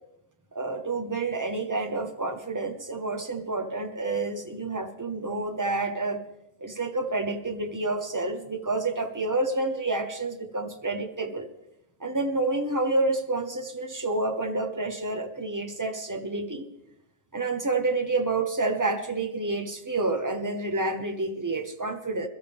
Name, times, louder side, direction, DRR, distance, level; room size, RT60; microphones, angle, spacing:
voice 1, 0.5-6.2 6.6-11.5 12.0-16.7 17.3-22.3, right 2 dB, 15° right, 5 dB, 0.7 m, -29 dB
21.5 x 13.0 x 3.5 m, 0.85 s
omnidirectional pair, 1.7 m